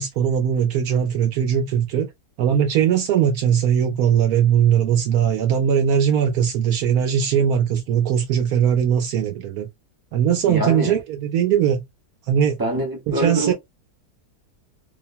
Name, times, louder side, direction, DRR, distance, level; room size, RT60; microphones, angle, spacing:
voice 1, 0.0-2.1 2.4-9.7 10.1-11.8 12.3-12.6 13.1-13.5, right 8 dB, 75° right, 1.0 m, -20 dB
voice 2, 10.5-11.0 12.6-13.5, right 2 dB, 25° right, 0.5 m, -24 dB
2.8 x 2.1 x 2.5 m
omnidirectional pair, 1.7 m